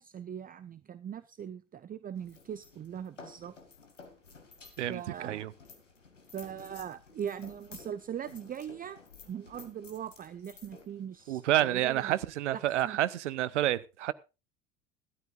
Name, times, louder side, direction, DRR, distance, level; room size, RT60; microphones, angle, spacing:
voice 1, 0.0-3.5 4.9-5.5 6.3-9.0 9.3-12.1 12.5-13.0, right 9 dB, 25° right, 0.7 m, -40 dB
sound 1, 2.2-12.1, left 4 dB, 85° left, 2.3 m, -54 dB
voice 2, 4.8-5.5 11.3-14.1, right 13 dB, 70° right, 0.9 m, -29 dB
18.0 x 13.0 x 2.5 m
figure-of-eight pair, 65°, 37 cm